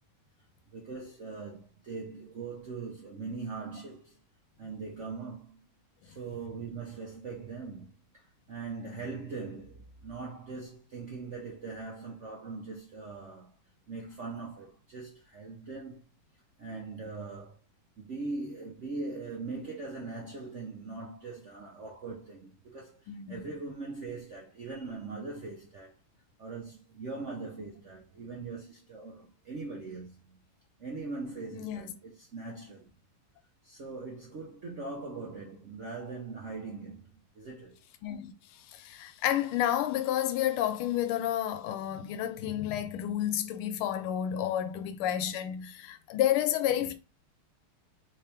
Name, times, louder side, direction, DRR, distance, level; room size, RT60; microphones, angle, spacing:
voice 1, 0.7-4.2 4.6-5.6 6.0-13.5 13.9-16.0 16.6-17.6 18.0-26.0 26.4-30.4 30.8-32.9 33.6-37.8 46.7-46.9, right 3 dB, 85° right, 0.6 m, -41 dB
voice 2, 23.1-23.4 31.5-31.8 38.0-46.9, left 11 dB, 90° left, 1.5 m, -30 dB
3.5 x 2.9 x 3.3 m
omnidirectional pair, 2.3 m